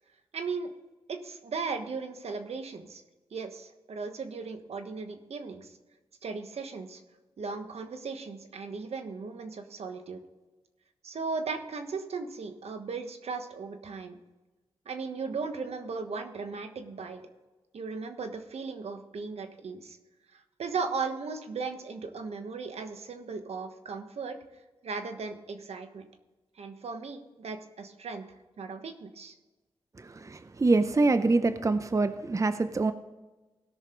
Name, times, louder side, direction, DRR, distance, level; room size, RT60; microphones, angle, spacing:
voice 1, 0.3-0.7 1.1-3.0 3.3-5.7 6.2-7.0 7.4-10.2 11.0-14.2 14.8-17.2 17.7-20.0 20.3-24.3 24.8-26.1 26.6-28.3 28.6-29.3, right 4 dB, 75° right, 7 dB, 1.3 m, -37 dB
voice 2, 30.0-32.9, right 3 dB, 30° right, 11 dB, 0.6 m, -25 dB
17.5 x 6.4 x 3.9 m, 1.2 s
cardioid pair, 75°, 11 cm